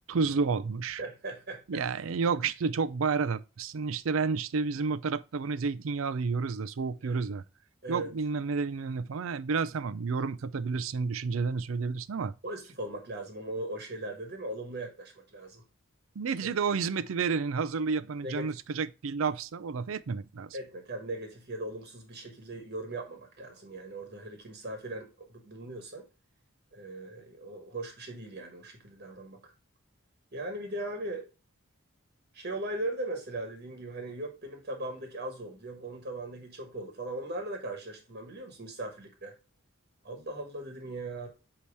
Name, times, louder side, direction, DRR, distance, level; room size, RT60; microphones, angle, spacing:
voice 1, 0.1-1.0 1.7-7.4 7.9-12.3 16.2-20.6, right 5 dB, 70° right, 0.5 m, -30 dB
voice 2, 1.0-1.8 7.0-7.2 7.8-8.1 12.4-15.6 16.4-16.5 18.2-18.5 20.5-26.1 26.7-29.5 30.3-31.2 32.3-39.3 40.0-41.3, right 1 dB, 50° right, 1.3 m, -39 dB
8.4 x 3.0 x 4.7 m
head